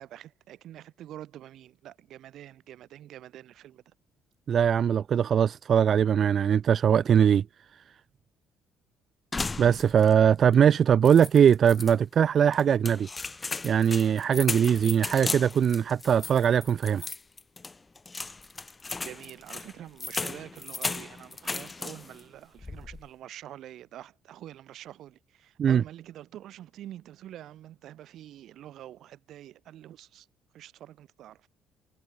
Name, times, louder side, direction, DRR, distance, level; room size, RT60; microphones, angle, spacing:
voice 1, 0.0-3.9 19.0-30.3 30.5-31.5, right 12 dB, 65° right, 1.4 m, -46 dB
voice 2, 4.5-7.5 9.6-13.1 13.6-17.1 25.6-25.8, right 8 dB, 45° right, 0.3 m, -21 dB
sound 1, 9.3-10.2 10.5-10.6 11.1-11.9 12.5-22.2 22.6-23.1, left 3 dB, 20° left, 0.9 m, -36 dB
cardioid pair, 135°, 0 cm